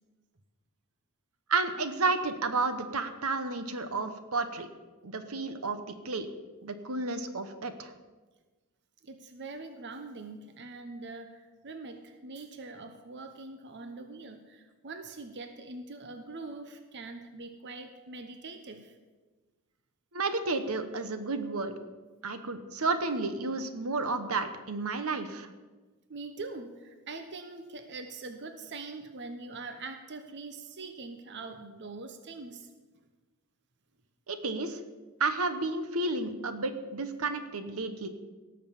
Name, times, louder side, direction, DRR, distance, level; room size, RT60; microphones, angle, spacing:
voice 1, 1.5-4.7 5.0-6.3 6.6-7.9 20.1-21.7 22.2-25.5 34.3-34.8 35.2-38.1, right 3 dB, 75° right, 9 dB, 1.1 m, -31 dB
voice 2, 9.0-18.9 26.1-32.7, right 3 dB, 50° right, 7 dB, 0.9 m, -43 dB
17.5 x 6.5 x 7.3 m, 1.3 s
head